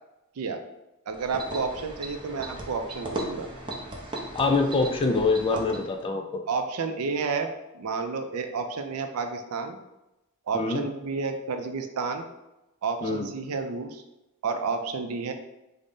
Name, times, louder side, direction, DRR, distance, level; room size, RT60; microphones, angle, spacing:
sound 1, 1.1-6.0, right 1 dB, 20° right, 0.6 m, -37 dB
voice 1, 1.1-3.5 5.5-5.6 6.5-7.5 7.7-9.8 10.5-12.3 12.8-14.0 14.4-15.3, right 4 dB, 80° right, 6 dB, 0.4 m, -30 dB
voice 2, 4.3-6.4 10.5-10.8 13.0-13.3, left 3 dB, 25° left, 5 dB, 0.3 m, -25 dB
3.8 x 2.1 x 3.6 m, 0.96 s
head